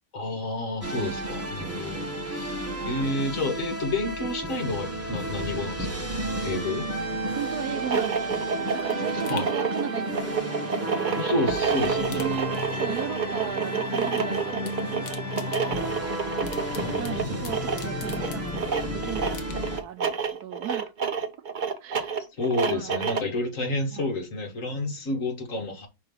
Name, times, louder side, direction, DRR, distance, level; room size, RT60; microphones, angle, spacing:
voice 1, 0.1-6.0 6.4-6.9 9.3-9.5 11.2-12.3 16.8-17.5 22.4-25.9, left 2 dB, 50° left, 2.2 m, -30 dB
sound 1, 0.8-19.8, right 1 dB, 10° right, 1.3 m, -32 dB
voice 2, 1.0-1.3 2.6-3.0 7.3-8.5 8.7-11.2 11.7-16.0 17.0-20.9 21.6-22.2 22.6-22.9 23.9-24.1, right 10 dB, 70° right, 1.3 m, -37 dB
sound 2, 7.7-23.4, right 6 dB, 40° right, 0.7 m, -29 dB
sound 3, 8.1-11.4 11.7-13.2 13.4-14.2 14.5-18.8 19.3-19.9 20.3-20.4, left 8 dB, 80° left, 1.6 m, -47 dB
5.7 x 3.9 x 5.4 m
omnidirectional pair, 1.8 m